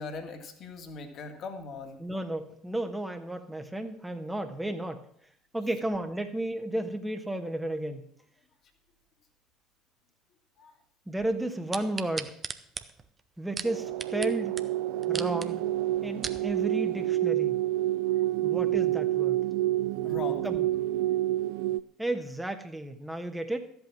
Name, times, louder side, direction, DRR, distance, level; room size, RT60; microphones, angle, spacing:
voice 1, 0.0-2.0 10.6-10.7 20.0-20.5, left 4 dB, 45° left, 6 dB, 2.1 m, -39 dB
voice 2, 2.0-5.0 5.5-8.0 11.1-12.4 13.4-14.5 15.1-15.6 16.0-17.6 18.4-19.4 20.4-20.7 22.0-23.6, right 1 dB, 10° right, 6 dB, 1.4 m, -33 dB
sound 1, 11.7-14.3 14.6-14.7 15.0-15.5 16.0-16.4 17.0-17.1, right 5 dB, 30° right, 0.9 m, -37 dB
sound 2, 13.6-21.8, right 14 dB, 65° right, 0.4 m, -28 dB
13.5 x 8.0 x 6.1 m, 0.66 s
figure-of-eight pair, 60°, 0 cm